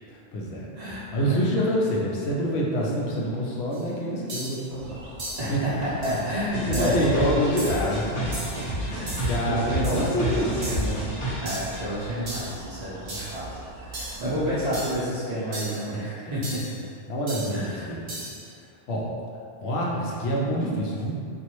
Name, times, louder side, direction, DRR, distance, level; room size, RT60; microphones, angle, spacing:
voice 1, 0.1-0.7 1.1-5.0 5.5-5.6 6.5-8.5 8.8-8.9 9.3-10.8 14.3-14.4 16.3-16.4 17.1-18.3 18.9-19.1 19.6-21.2, equal, 70° left, -3 dB, 0.8 m, -27 dB
voice 2, 0.8-1.4 5.4-7.4 8.8-10.4 10.7-11.1 11.4-13.4 13.8-16.6 17.5-18.0, equal, 45° right, -10 dB, 0.6 m, -30 dB
sound 1, 3.7-3.8 4.3-4.6 5.2-5.5 6.0-6.3 6.7-7.1 7.6-7.9 8.3-8.6 9.1-9.4 9.8-10.1 10.6-11.0 11.5-11.8 12.3-12.6 13.1-13.4 13.9-14.3 14.7-15.1 15.5-15.9 16.4-16.8 17.3-17.6 18.1-18.4, right 1 dB, 60° right, 1.1 m, -36 dB
sound 2, 4.7-15.0, right 1 dB, 80° right, 0.9 m, -43 dB
sound 3, 6.5-11.8, right 1 dB, 45° left, 1.0 m, -30 dB
3.0 x 2.5 x 3.0 m, 2.4 s
omnidirectional pair, 1.2 m